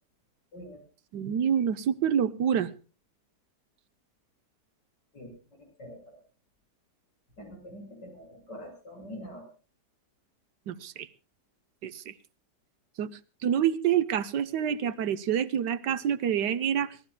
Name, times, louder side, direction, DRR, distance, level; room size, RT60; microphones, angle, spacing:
voice 1, 1.1-2.7 10.7-11.1 11.8-12.1 13.0-13.1 13.4-16.9, right 9 dB, 80° right, 15 dB, 1.5 m, -27 dB
voice 2, 5.8-6.2 7.4-9.5, equal, 90° left, 3 dB, 7.4 m, -44 dB
24.0 x 17.5 x 2.3 m, 0.34 s
omnidirectional pair, 1.8 m